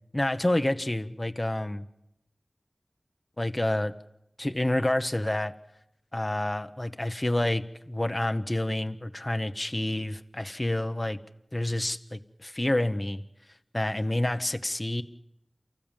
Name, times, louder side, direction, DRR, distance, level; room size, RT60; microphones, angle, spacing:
voice 1, 0.1-1.9 3.4-3.9 4.4-5.5 6.1-11.2 11.5-13.2 13.7-15.0, left 1 dB, 30° left, 8 dB, 1.0 m, -28 dB
29.5 x 15.0 x 7.4 m, 0.85 s
wide cardioid pair, 60°, 0 cm